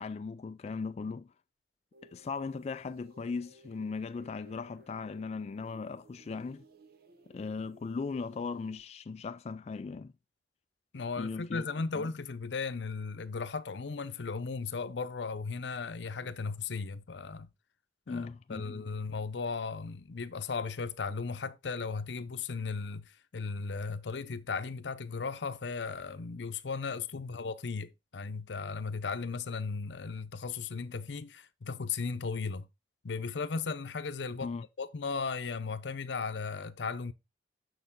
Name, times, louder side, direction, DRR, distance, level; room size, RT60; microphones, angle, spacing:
voice 1, 0.0-1.3 2.0-6.7 7.3-10.1 11.2-11.7 11.9-12.1 18.1-18.8 34.4-34.6, left 4 dB, 40° left, 0.3 m, -38 dB
sound 1, 1.9-8.8, equal, 60° right, 0.9 m, -59 dB
voice 2, 10.9-17.5 18.1-32.7 33.0-37.1, left 4 dB, 85° left, 0.7 m, -36 dB
6.7 x 6.4 x 3.6 m
head